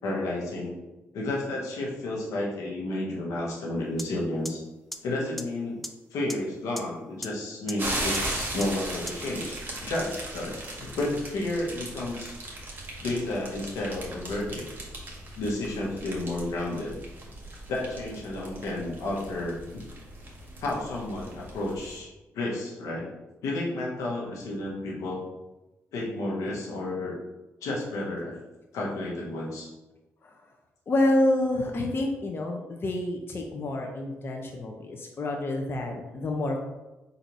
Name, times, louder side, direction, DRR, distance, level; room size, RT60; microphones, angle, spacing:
voice 1, 0.0-0.7 1.1-4.6 5.0-5.8 6.1-12.4 13.0-14.7 15.4-16.9 17.7-19.6 20.6-23.1 23.4-25.2 25.9-27.2 27.6-28.4 28.7-29.7, left 2 dB, 85° left, -2 dB, 1.1 m, -31 dB
sound 1, 4.0-4.1 4.5-4.6 4.9-5.0 5.4-5.5 5.8-5.9 6.3-6.4 6.8-6.9 7.2-7.3 7.7-7.8 8.1-8.2 8.6-8.7 9.1-9.2, equal, ahead, 0.5 m, -34 dB
sound 2, 7.8-22.0, right 1 dB, 35° right, 1.6 m, -38 dB
voice 2, 30.9-36.6, left 1 dB, 45° left, 1 dB, 0.7 m, -28 dB
4.0 x 2.7 x 4.7 m, 1.0 s
supercardioid pair, 65°, 5 cm